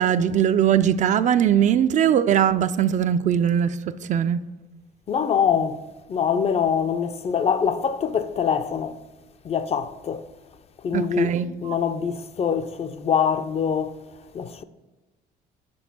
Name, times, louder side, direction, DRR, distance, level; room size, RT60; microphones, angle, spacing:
voice 1, 0.0-3.8 4.1-4.4 10.9-11.5, right 9 dB, 45° right, 0.4 m, -20 dB
voice 2, 5.1-9.0 9.4-10.3 10.8-11.3 11.6-14.0 14.3-14.6, left 7 dB, 40° left, 0.4 m, -24 dB
6.2 x 5.0 x 5.9 m
cardioid pair, 110°, 17 cm